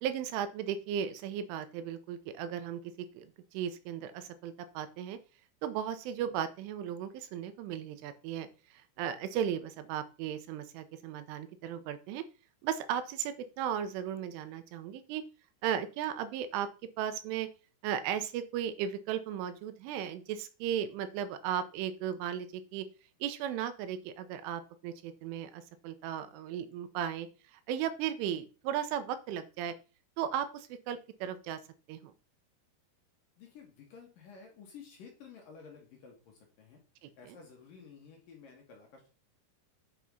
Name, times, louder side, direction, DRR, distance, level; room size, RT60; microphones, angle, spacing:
voice 1, 0.0-5.2 5.6-12.2 12.6-15.2 15.6-16.7 17.0-17.5 17.8-22.9 23.2-27.3 27.5-29.7 30.2-31.6 31.9-32.1 37.0-37.4, right 9 dB, 85° right, 11 dB, 3.3 m, -36 dB
voice 2, 33.4-36.8 37.2-39.1, left 6 dB, 55° left, 1 dB, 2.9 m, -53 dB
8.6 x 5.6 x 5.4 m, 0.33 s
omnidirectional pair, 5.7 m